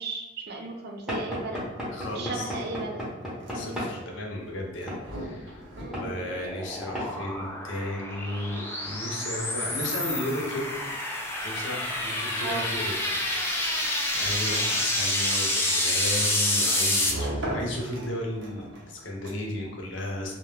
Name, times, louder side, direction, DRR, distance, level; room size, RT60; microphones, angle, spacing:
voice 1, 0.0-1.6 2.1-3.0 3.5-3.8 5.8-6.1 12.4-12.7, right 4 dB, 60° right, 3 dB, 0.4 m, -36 dB
Knock / Wood, 1.1-4.0 4.9-5.1 5.9-6.1 6.9-7.1, equal, 5° right, 0.7 m, -33 dB
voice 2, 1.9-2.5 3.5-10.7 11.4-13.0 13.3-13.9 14.1-20.3, left 1 dB, 80° left, 0 dB, 0.6 m, -34 dB
sound 1, 3.2-19.7, right 1 dB, 80° right, 0.8 m, -42 dB
sound 2, 5.4-17.1, left 1 dB, 10° left, 0.3 m, -28 dB
2.3 x 2.2 x 3.2 m, 1.1 s
head